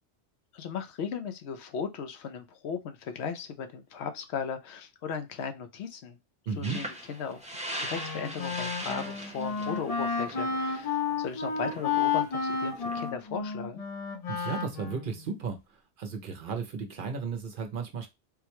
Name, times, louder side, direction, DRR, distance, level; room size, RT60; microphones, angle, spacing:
voice 1, 0.5-6.2 6.6-7.4 7.7-13.8, left 6 dB, 75° left, 0.8 m, -37 dB
voice 2, 6.5-6.8 14.3-15.6 16.0-18.1, right 5 dB, 60° right, 0.7 m, -34 dB
sound 1, 6.6-13.1, right 1 dB, 10° right, 0.4 m, -41 dB
Wind instrument woodwind instrument, 7.9-15.2, left 5 dB, 45° left, 0.5 m, -31 dB
3.7 x 2.2 x 2.9 m
omnidirectional pair, 1.1 m